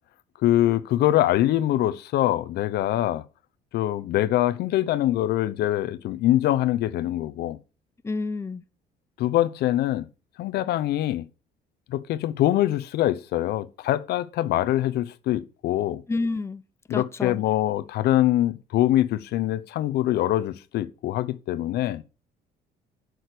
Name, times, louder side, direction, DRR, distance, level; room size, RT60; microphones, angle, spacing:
voice 1, 0.4-3.2 3.7-7.6 9.2-10.1 10.4-11.3 11.9-16.0 16.9-22.0, left 13 dB, 75° left, 0.9 m, -24 dB
voice 2, 8.0-8.6 16.1-16.6 16.9-17.4, left 3 dB, 15° left, 0.7 m, -29 dB
7.9 x 6.5 x 6.8 m
cardioid pair, 110°, 17 cm